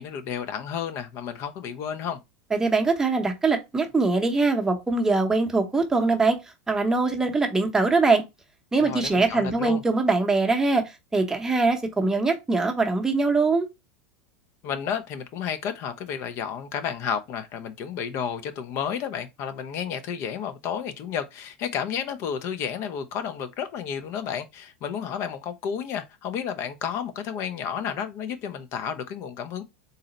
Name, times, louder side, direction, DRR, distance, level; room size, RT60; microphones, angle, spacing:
voice 1, 0.0-2.2 8.8-9.8 14.6-29.6, left 8 dB, 50° left, 0.5 m, -31 dB
voice 2, 2.5-6.4 6.7-8.2 8.7-10.8 11.1-13.7, right 3 dB, 10° right, 0.7 m, -22 dB
3.9 x 2.0 x 3.8 m
supercardioid pair, 125°, 6 cm